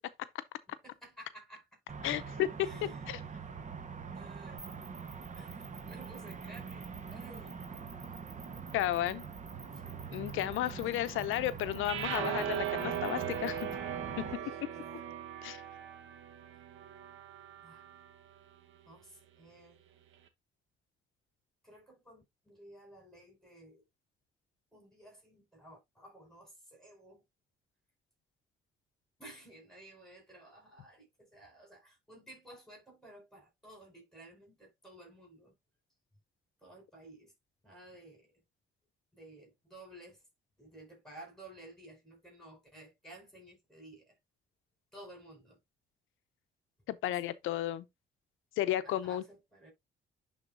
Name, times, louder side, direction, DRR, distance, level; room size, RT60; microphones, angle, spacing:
voice 1, 0.7-2.2 2.6-3.2 4.1-7.7 8.0-8.7 9.7-10.1 11.0-11.3 14.3-15.3 17.6-17.8 18.9-19.8 21.6-23.8 24.7-27.2 29.2-35.6 36.6-37.3 37.6-38.4 39.1-40.2 40.6-44.2 44.9-45.6 47.0-47.3 48.8-49.7, right 1 dB, ahead, 4.5 m, -54 dB
sound 1, 1.9-14.4, right 5 dB, 40° right, 1.0 m, -44 dB
voice 2, 2.0-2.5 3.1-3.2 8.7-9.2 10.1-13.7 14.2-14.3 15.4-15.6 46.9-47.9 48.6-49.2, left 13 dB, 85° left, 0.6 m, -33 dB
sound 2, 4.6-13.7, right 4 dB, 15° right, 3.4 m, -54 dB
sound 3, 11.8-18.1, right 9 dB, 80° right, 1.0 m, -38 dB
11.0 x 3.7 x 2.5 m
cardioid pair, 90°, 20 cm